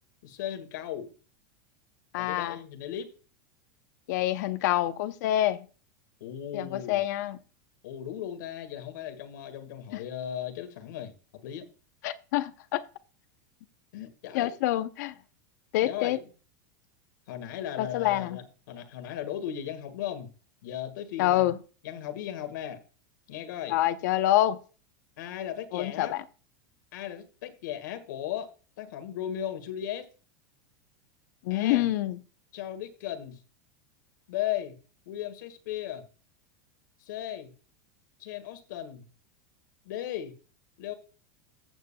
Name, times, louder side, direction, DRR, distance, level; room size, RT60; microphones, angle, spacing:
voice 1, 0.2-1.1 2.2-3.1 6.2-7.0 7.8-11.1 11.4-11.7 13.9-14.5 15.8-16.3 17.3-20.3 20.6-21.5 21.8-22.8 23.3-23.8 25.2-26.2 26.9-28.5 28.8-30.1 31.5-31.9 32.5-33.4 34.3-34.8 35.1-36.0 37.0-37.5 38.2-39.1 39.9-40.3 40.8-40.9, left 10 dB, 80° left, 1.8 m, -36 dB
voice 2, 2.1-2.6 4.1-5.6 6.5-7.4 9.9-10.0 12.0-12.8 14.3-15.1 15.7-16.2 17.8-18.4 21.2-21.6 23.7-24.6 25.7-26.2 31.4-32.2, left 14 dB, 65° left, 0.7 m, -26 dB
14.5 x 7.1 x 2.2 m
supercardioid pair, 155°, 10 cm